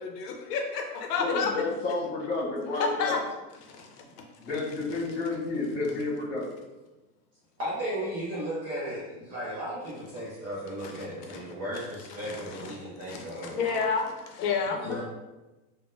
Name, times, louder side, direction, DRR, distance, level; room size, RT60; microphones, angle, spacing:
voice 1, 0.0-1.5 2.7-3.2 3.6-3.9 10.8-10.9 11.3-11.4 12.2-12.7 13.1-15.0, left 5 dB, 85° left, 2 dB, 0.7 m, -30 dB
voice 2, 1.2-3.2 4.4-6.4 14.8-15.0, left 3 dB, 60° left, -4 dB, 1.2 m, -30 dB
voice 3, 7.6-13.6 14.7-15.0, equal, 20° right, -9 dB, 0.3 m, -35 dB
3.6 x 2.1 x 2.5 m, 1.1 s
supercardioid pair, 155°, 46 cm